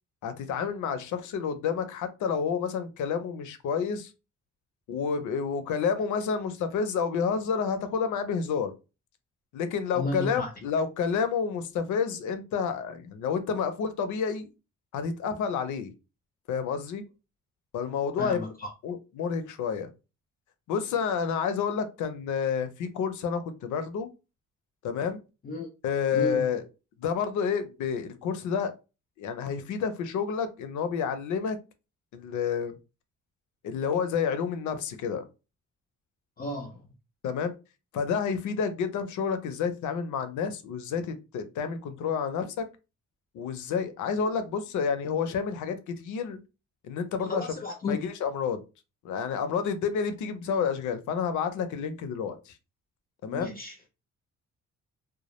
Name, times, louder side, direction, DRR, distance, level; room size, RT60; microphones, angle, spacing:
voice 1, 0.2-4.1 4.9-8.7 9.5-14.5 14.9-15.9 16.5-17.0 17.7-18.5 18.8-19.9 20.7-24.1 24.8-25.2 25.8-26.6 27.0-28.7 29.2-31.6 32.1-32.8 33.6-35.3 37.2-37.5 37.9-42.6 43.3-46.4 46.8-47.5 47.9-48.6 49.0-52.5 53.2-53.5, left 6 dB, 75° left, 0.6 m, -29 dB
voice 2, 9.9-10.5 18.2-18.7 25.4-25.7 26.1-26.5 36.4-36.8 47.2-48.0 53.3-53.8, left 2 dB, 30° left, 0.4 m, -33 dB
2.2 x 2.0 x 2.9 m
cardioid pair, 90°, 30 cm